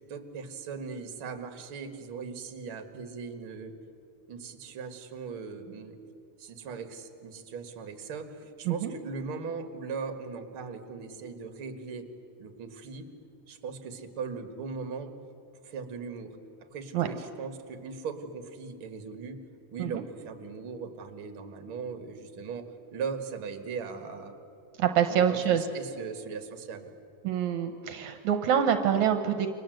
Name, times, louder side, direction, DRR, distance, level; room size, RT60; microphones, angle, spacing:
voice 1, 0.1-3.7 4.3-6.0 6.4-12.1 12.4-13.1 13.5-15.2 15.6-16.4 16.7-19.4 19.7-24.4 25.1-26.9, right 5 dB, 45° right, 7 dB, 2.4 m, -39 dB
voice 2, 24.8-25.7 27.2-29.5, right 9 dB, 75° right, 7 dB, 2.4 m, -26 dB
29.5 x 24.5 x 7.9 m, 2.7 s
omnidirectional pair, 3.5 m